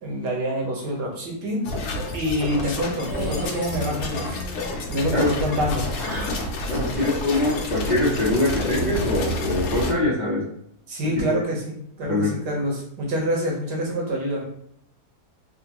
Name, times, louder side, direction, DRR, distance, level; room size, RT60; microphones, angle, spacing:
voice 1, 0.0-1.7 2.1-4.4 4.9-5.9 10.9-14.4, equal, 90° right, -1 dB, 1.5 m, -26 dB
sound 1, 1.6-9.9, left 2 dB, 70° left, 1.0 m, -29 dB
sound 2, 3.0-3.9 4.2-4.7 5.9-6.4, equal, 30° right, 0.9 m, -34 dB
voice 2, 6.7-10.4 12.0-12.3, left 2 dB, 40° left, -8 dB, 0.6 m, -23 dB
3.6 x 2.2 x 2.9 m, 0.71 s
omnidirectional pair, 1.7 m